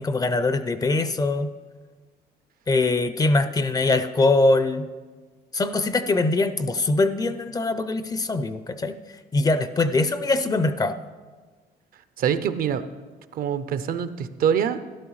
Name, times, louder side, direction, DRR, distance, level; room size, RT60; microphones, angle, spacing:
voice 1, 0.0-1.5 2.7-4.9 5.5-9.0 9.3-11.0, left 2 dB, 20° left, 12 dB, 0.4 m, -22 dB
voice 2, 12.2-12.8 13.3-14.8, right 8 dB, 60° right, 12 dB, 0.6 m, -24 dB
12.5 x 11.0 x 3.1 m, 1.4 s
cardioid pair, 110°, 17 cm